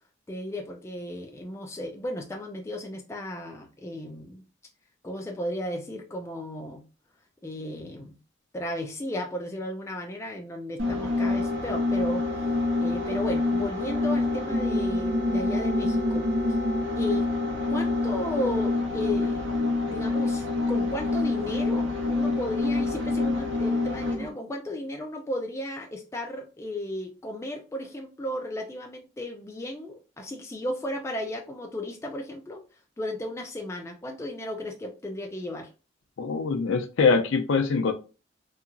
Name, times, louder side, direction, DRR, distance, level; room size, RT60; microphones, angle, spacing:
voice 1, 0.3-4.4 5.0-6.8 7.4-8.1 8.5-16.3 17.0-17.3 17.7-19.5 19.9-32.6 33.0-35.7, left 1 dB, 15° left, 0.3 m, -34 dB
sound 1, 10.8-24.3, left 2 dB, 80° right, 1.0 m, -26 dB
voice 2, 36.2-37.9, left 4 dB, 75° left, 0.4 m, -23 dB
2.8 x 2.3 x 2.4 m
head